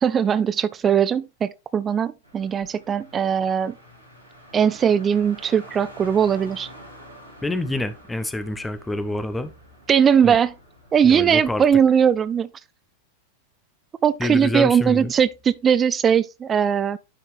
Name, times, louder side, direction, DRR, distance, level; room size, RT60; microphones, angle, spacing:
voice 1, 0.0-3.7 4.5-6.7 9.9-10.5 10.9-12.5 14.0-17.0, right 8 dB, 25° right, 0.4 m, -20 dB
Car, 2.2-11.8, equal, 90° right, 2.2 m, -47 dB
voice 2, 7.4-9.5 10.2-10.4 11.0-11.6 14.2-15.1, left 2 dB, 10° left, 0.7 m, -27 dB
10.0 x 4.3 x 3.3 m
figure-of-eight pair, 90°, 0 cm